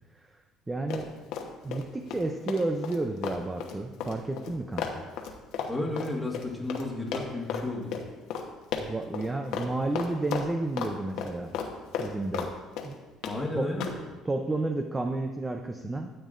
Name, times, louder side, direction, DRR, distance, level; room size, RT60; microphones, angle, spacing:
voice 1, 0.7-1.1 1.6-5.0 8.8-11.5 12.0-12.5 12.8-13.0 13.5-13.7 14.2-16.1, right 2 dB, 15° right, 5 dB, 0.5 m, -31 dB
Run, 0.9-1.8 2.1-6.9 7.1-7.6 7.9-8.0 8.3-8.4 8.7-9.3 9.5-9.7 9.9-10.9 11.2-12.5 12.8-13.4 13.8-14.0, left 7 dB, 75° left, 1.0 m, -33 dB
voice 2, 5.7-7.9 13.2-13.8, left 2 dB, ahead, -3 dB, 1.6 m, -32 dB
13.0 x 8.2 x 2.5 m, 1.2 s
cardioid pair, 135°, 0 cm